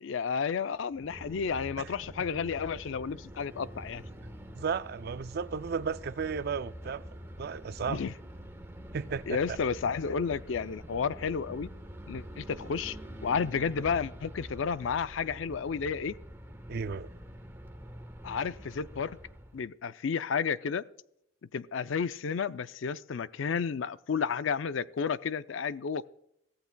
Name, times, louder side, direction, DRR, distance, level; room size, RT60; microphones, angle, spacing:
voice 1, 0.0-4.0 7.9-8.1 9.3-11.7 12.1-13.0 13.2-16.2 18.2-19.2 19.5-20.8 21.5-26.1, left 6 dB, 70° left, 0.4 m, -32 dB
sound 1, 0.9-19.7, equal, 15° right, 1.2 m, -46 dB
voice 2, 4.5-7.0 7.4-8.0 8.9-9.6 16.7-17.1, right 6 dB, 50° right, 0.4 m, -34 dB
23.0 x 15.0 x 2.2 m
head